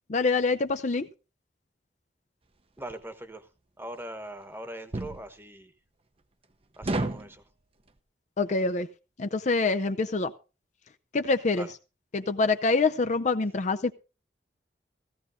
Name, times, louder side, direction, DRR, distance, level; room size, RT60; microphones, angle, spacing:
voice 1, 0.1-1.1 8.4-8.9 9.2-10.3 11.1-11.7 12.1-14.0, left 3 dB, 40° left, 0.5 m, -25 dB
voice 2, 2.8-3.5 3.8-5.7 6.8-7.4 11.5-11.7, right 1 dB, 15° right, 1.1 m, -41 dB
sound 1, 2.8-3.0 4.9-5.2 6.8-7.3, right 2 dB, 35° right, 0.7 m, -30 dB
16.0 x 15.5 x 2.7 m
head